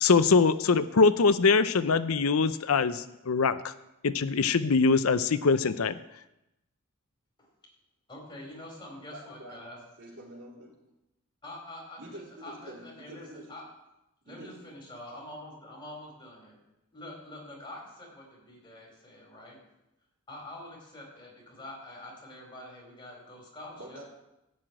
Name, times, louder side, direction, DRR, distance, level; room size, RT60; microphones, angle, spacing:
voice 1, 0.0-3.7 4.0-5.9, left 4 dB, 80° left, 13 dB, 0.6 m, -23 dB
voice 2, 8.1-9.8 11.4-13.6 14.2-16.6 16.9-19.6 20.3-24.0, left 1 dB, 25° left, -2 dB, 5.2 m, -46 dB
voice 3, 9.1-9.6 10.0-10.7 12.0-13.5 14.3-14.6 23.8-24.1, right 1 dB, 60° right, -2 dB, 3.9 m, -46 dB
16.0 x 6.1 x 8.9 m, 0.90 s
head